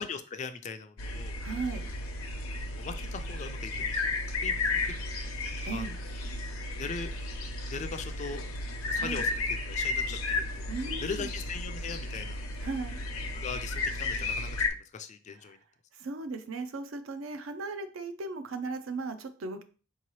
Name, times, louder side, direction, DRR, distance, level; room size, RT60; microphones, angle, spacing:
voice 1, 0.0-1.4 2.7-5.0 5.7-5.8 6.8-7.1 7.7-8.4 8.9-9.3 9.7-10.7 11.0-12.4 13.3-15.6, left 5 dB, 35° left, 9 dB, 0.3 m, -40 dB
sound 1, 1.0-14.7, left 3 dB, 80° left, 0.7 m, -33 dB
voice 2, 1.4-1.9 5.6-6.0 8.9-9.3 10.7-11.3 12.6-13.0 15.3-15.6 15.9-19.6, right 3 dB, 65° right, 9 dB, 0.5 m, -37 dB
4.6 x 2.9 x 3.0 m, 0.37 s
head